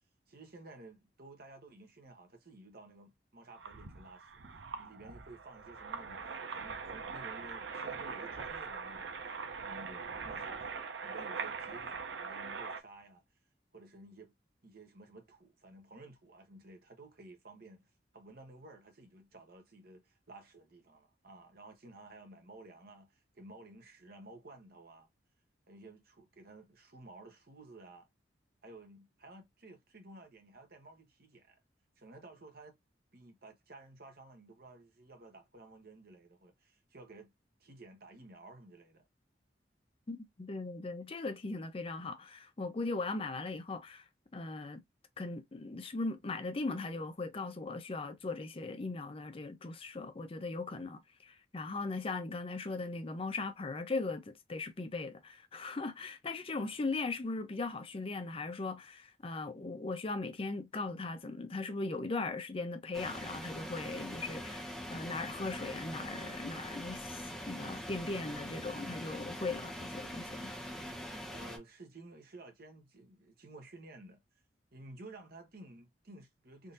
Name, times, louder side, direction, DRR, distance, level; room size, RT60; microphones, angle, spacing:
voice 1, 0.3-4.4 4.8-9.2 9.6-13.2 13.7-14.3 14.6-25.1 25.7-28.1 28.6-31.6 32.0-32.7 33.1-37.3 37.6-39.1 71.3-74.2 74.7-76.7, right 2 dB, 55° right, 1.0 m, -54 dB
sound 1, 3.5-12.8, right 5 dB, 85° right, 0.6 m, -42 dB
voice 2, 40.1-44.1 44.3-44.8 45.2-70.5, left 3 dB, 30° left, 0.5 m, -39 dB
sound 2, 62.9-71.6, equal, ahead, 0.8 m, -43 dB
3.6 x 2.7 x 2.5 m
head